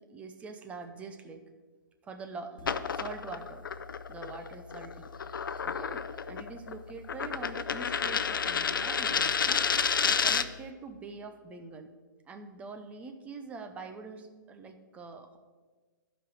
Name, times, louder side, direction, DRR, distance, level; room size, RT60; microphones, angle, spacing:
voice 1, 0.0-1.4 2.0-3.6 4.1-5.1 5.5-9.7 10.0-11.9 12.3-15.4, right 4 dB, 10° right, 6 dB, 0.6 m, -44 dB
sound 1, 2.6-10.6, left 6 dB, 90° left, 0.5 m, -31 dB
12.0 x 5.1 x 4.8 m, 1.4 s
hypercardioid pair, 145°, 11 cm